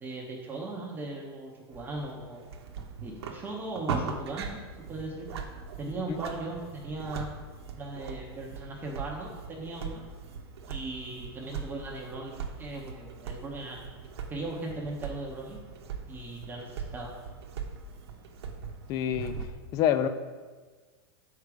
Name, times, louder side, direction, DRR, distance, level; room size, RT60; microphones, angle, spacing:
voice 1, 0.0-2.5 3.0-4.6 4.9-5.3 5.8-7.3 7.8-10.1 10.7-13.8 14.3-15.6 16.1-17.1, right 2 dB, 15° right, -1 dB, 0.8 m, -38 dB
sound 1, 1.7-19.5, right 5 dB, 85° right, 0.9 m, -40 dB
voice 2, 18.9-19.4 19.7-20.1, left 10 dB, 30° left, 11 dB, 0.3 m, -26 dB
6.5 x 4.7 x 4.9 m, 1.4 s
supercardioid pair, 155°, 13 cm